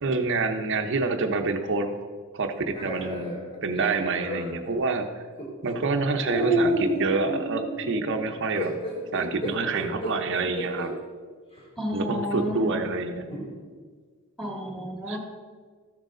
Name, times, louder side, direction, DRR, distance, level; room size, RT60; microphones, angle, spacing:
voice 1, 0.0-2.0 2.3-3.4 3.6-5.2 5.6-8.7 9.1-10.9 11.9-13.3 15.1-15.2, right 3 dB, 60° right, 5 dB, 0.7 m, -27 dB
sound 1, 2.7-4.6 5.4-5.7 6.2-10.9 11.6-11.7 13.3-13.5, right 1 dB, 25° left, 2.2 m, -30 dB
voice 2, 11.8-12.8 14.4-15.2, equal, ahead, -1 dB, 1.9 m, -31 dB
13.0 x 6.5 x 3.8 m, 1.6 s
head